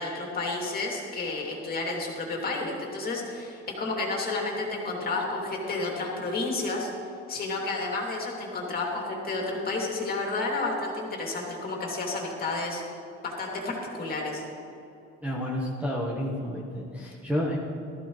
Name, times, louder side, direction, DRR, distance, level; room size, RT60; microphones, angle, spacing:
voice 1, 0.0-6.9 7.3-12.8 13.2-14.4, left 3 dB, 30° left, -1 dB, 2.5 m, -31 dB
voice 2, 15.2-17.6, equal, 5° right, -3 dB, 1.1 m, -30 dB
17.0 x 14.0 x 3.2 m, 2.8 s
cardioid pair, 160°, 29 cm